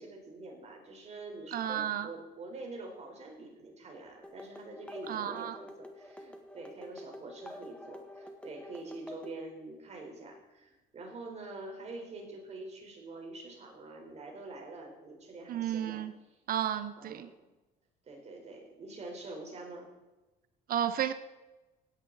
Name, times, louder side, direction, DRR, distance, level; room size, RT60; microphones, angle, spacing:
voice 1, 0.0-16.0 16.3-16.4 17.0-17.3 18.1-19.9, right 2 dB, 40° right, 1 dB, 4.2 m, -45 dB
voice 2, 1.5-2.1 5.1-5.6 15.5-16.1 16.5-17.3 20.7-21.1, right 10 dB, 60° right, 12 dB, 0.8 m, -32 dB
sound 1, 4.2-9.4, left 1 dB, 5° left, 1.6 m, -48 dB
16.5 x 9.8 x 4.1 m, 1.1 s
cardioid pair, 110°, 17 cm